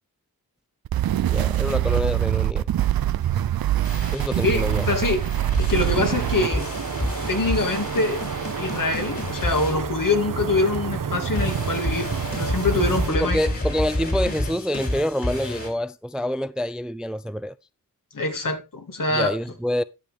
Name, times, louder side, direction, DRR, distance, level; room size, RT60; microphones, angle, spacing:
sound 1, 0.8-6.5, right 12 dB, 85° right, 0.6 m, -23 dB
voice 1, 1.3-2.7 4.1-4.9 13.1-17.5 19.1-19.8, equal, ahead, 0.4 m, -26 dB
sound 2, 3.8-10.5 11.4-15.7, left 1 dB, 40° left, 3.8 m, -30 dB
voice 2, 4.4-5.2 5.6-6.6 7.3-8.3 8.6-12.1 12.4-13.4 18.1-19.4, left 3 dB, 65° left, 2.4 m, -24 dB
sound 3, 5.7-13.1, right 7 dB, 65° right, 1.0 m, -30 dB
12.0 x 6.7 x 3.6 m
cardioid pair, 60°, 35 cm